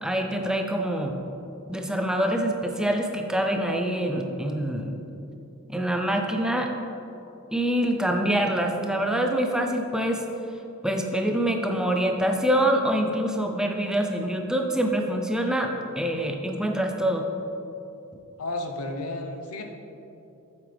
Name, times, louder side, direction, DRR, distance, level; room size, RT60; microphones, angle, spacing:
voice 1, 0.0-1.1 1.7-5.0 5.7-6.7 7.5-10.2 10.8-15.7 16.0-17.3, right 1 dB, 5° right, 3 dB, 0.5 m, -25 dB
voice 2, 18.4-19.6, left 2 dB, 75° left, 4 dB, 0.8 m, -32 dB
8.4 x 7.1 x 3.3 m, 2.9 s
head